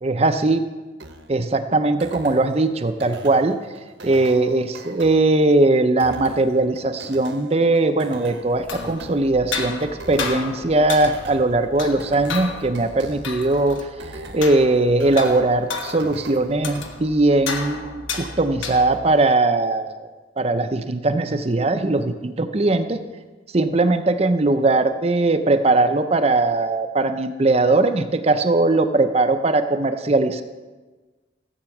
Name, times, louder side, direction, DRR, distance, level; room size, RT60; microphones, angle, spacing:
voice 1, 0.0-0.7 1.3-3.6 4.0-13.9 14.3-20.0 20.4-23.0 23.5-30.4, right 2 dB, 30° right, 9 dB, 0.6 m, -20 dB
sound 1, 1.0-17.0, right 2 dB, 65° right, 1.1 m, -42 dB
sound 2, 8.5-19.2, left 4 dB, 90° left, 1.3 m, -33 dB
15.0 x 8.1 x 6.0 m, 1.3 s
head